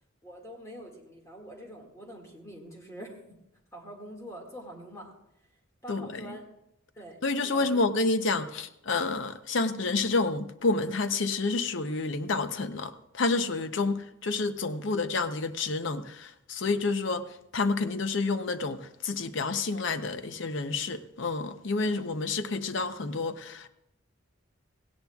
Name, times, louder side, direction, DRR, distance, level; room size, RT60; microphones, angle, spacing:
voice 1, 0.2-3.2 3.7-5.1 5.8-6.5 7.0-7.9 13.8-14.1, equal, 15° left, 0 dB, 1.9 m, -45 dB
voice 2, 5.9-6.4 7.2-17.3 17.5-23.7, left 3 dB, 65° left, 11 dB, 0.7 m, -29 dB
17.5 x 16.0 x 2.3 m, 0.84 s
head